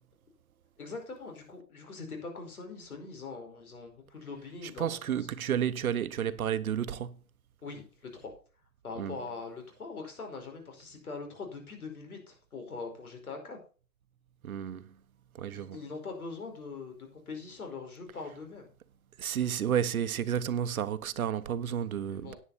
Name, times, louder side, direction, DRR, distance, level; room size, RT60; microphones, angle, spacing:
voice 1, 0.8-5.2 7.6-8.3 8.8-13.6 15.5-18.7 22.1-22.4, left 4 dB, 85° left, 5.0 m, -42 dB
voice 2, 4.8-7.2 9.0-9.2 14.4-14.9 15.4-15.8 19.2-22.3, right 9 dB, 75° right, 1.0 m, -31 dB
10.0 x 9.5 x 4.1 m
hypercardioid pair, 130°, 42 cm